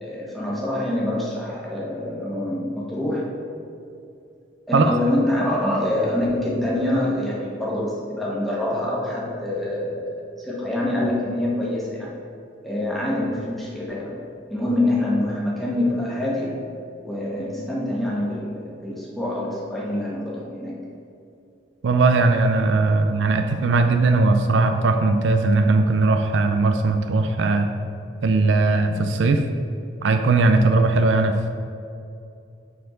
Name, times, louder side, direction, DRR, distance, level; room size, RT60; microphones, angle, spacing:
voice 1, 0.0-3.3 4.7-10.1 10.4-12.1 12.6-14.1 14.5-16.5 17.0-20.7, left 1 dB, ahead, -6 dB, 1.4 m, -25 dB
voice 2, 21.8-27.7 28.2-29.4 30.0-31.5, right 3 dB, 65° right, 6 dB, 0.4 m, -19 dB
6.7 x 4.4 x 5.1 m, 2.6 s
head